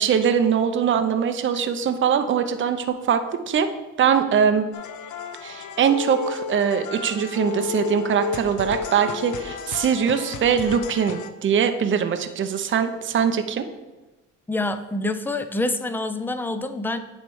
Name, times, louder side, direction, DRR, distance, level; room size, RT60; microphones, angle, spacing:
voice 1, 0.0-3.2 3.5-3.7 4.0-4.7 5.4-13.7, right 7 dB, 40° right, 8 dB, 0.6 m, -22 dB
sound 1, 4.7-11.3, left 7 dB, 75° left, 0.6 m, -33 dB
voice 2, 14.5-17.0, left 2 dB, 5° left, 9 dB, 0.5 m, -26 dB
9.2 x 3.2 x 4.7 m, 1.1 s
cardioid pair, 90°, 30 cm